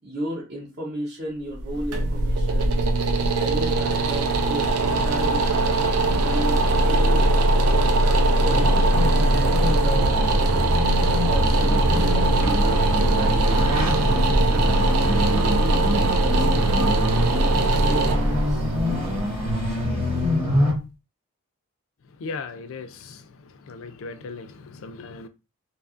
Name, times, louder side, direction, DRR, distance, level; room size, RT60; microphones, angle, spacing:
voice 1, 0.0-2.8 3.4-7.3 7.7-8.7 9.7-10.6 11.3-13.6 14.5-17.0 17.3-18.6, right 1 dB, 50° right, -6 dB, 0.7 m, -35 dB
sound 1, 1.5-20.5, right 2 dB, 85° right, 0.4 m, -21 dB
sound 2, 8.4-20.7, left 1 dB, 25° right, 0.9 m, -26 dB
voice 2, 22.2-22.9 23.7-24.5 24.8-25.3, left 4 dB, 60° left, 10 dB, 0.3 m, -36 dB
2.7 x 2.3 x 2.4 m, 0.28 s
head